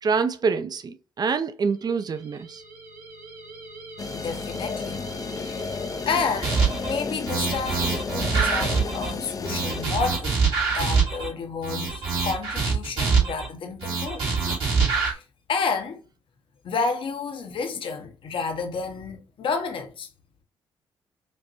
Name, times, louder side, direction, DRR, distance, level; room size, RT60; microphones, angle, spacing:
voice 1, 0.0-2.6, right 5 dB, 40° right, 0.5 m, -26 dB
sound 1, 1.7-8.1, right 2 dB, 85° right, 2.0 m, -43 dB
sound 2, 4.0-9.8, left 5 dB, 35° left, 0.5 m, -33 dB
voice 2, 4.1-5.1 5.4-5.7 6.1-10.4 10.7-14.3 14.8-16.0 16.6-20.1, left 5 dB, 60° left, 0.8 m, -30 dB
sound 3, 6.4-6.9 7.3-9.1 9.4-11.3 11.6-13.5 13.8-15.1, right 5 dB, 65° right, 2.0 m, -24 dB
5.1 x 2.2 x 2.9 m
supercardioid pair, 55°, 10 cm